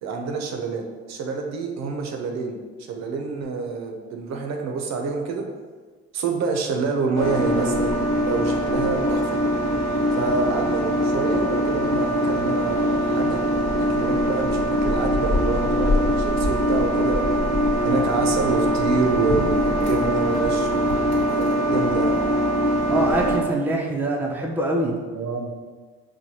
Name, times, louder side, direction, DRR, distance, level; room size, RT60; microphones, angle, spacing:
voice 1, 0.0-2.6 2.9-5.4 6.1-7.9 8.2-9.3 10.1-13.4 13.7-17.2 17.8-20.8 21.3-22.2 25.1-25.5, right 4 dB, 60° right, 3 dB, 0.6 m, -27 dB
sound 1, 7.1-23.4, equal, 60° left, 1.1 m, -22 dB
voice 2, 22.9-24.9, right 1 dB, 5° right, -1 dB, 0.5 m, -24 dB
4.6 x 2.1 x 2.8 m, 1.4 s
supercardioid pair, 80°, 30 cm